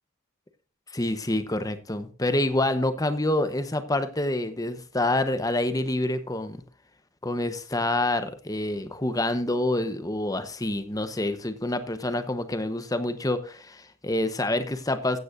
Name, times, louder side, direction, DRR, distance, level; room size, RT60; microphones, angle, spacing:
voice 1, 0.9-6.6 7.2-15.2, left 1 dB, 15° left, 10 dB, 0.9 m, -27 dB
15.0 x 9.4 x 2.5 m, 0.39 s
head